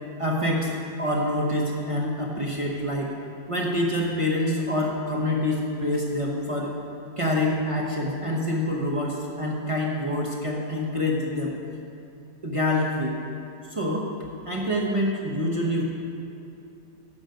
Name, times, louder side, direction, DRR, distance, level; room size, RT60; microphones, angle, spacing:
voice 1, 0.2-0.7 1.0-3.2 3.5-6.7 7.2-11.5 12.4-13.2 13.7-14.1 14.4-15.8, left 1 dB, 30° right, -3 dB, 0.6 m, -26 dB
11.0 x 8.0 x 5.2 m, 2.8 s
omnidirectional pair, 2.0 m